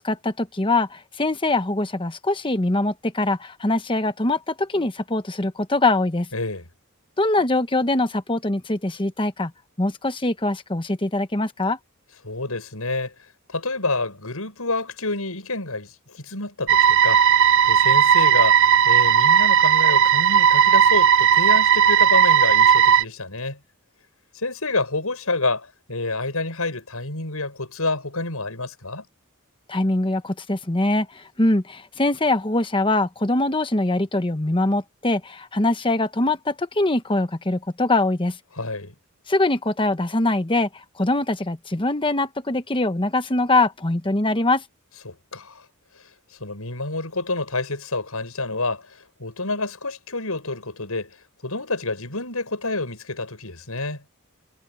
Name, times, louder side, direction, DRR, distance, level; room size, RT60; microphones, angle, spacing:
voice 1, 0.0-6.3 7.2-9.5 9.8-11.8 29.7-38.4 39.3-44.6, left 2 dB, 25° left, 1.2 m, -23 dB
voice 2, 6.3-6.6 12.2-13.1 13.5-17.2 17.7-23.6 24.3-29.0 38.6-38.9 45.0-45.6 46.4-51.2 51.4-54.0, left 3 dB, 80° left, 6.6 m, -28 dB
sound 1, 16.7-23.0, right 8 dB, 60° right, 0.6 m, -16 dB
head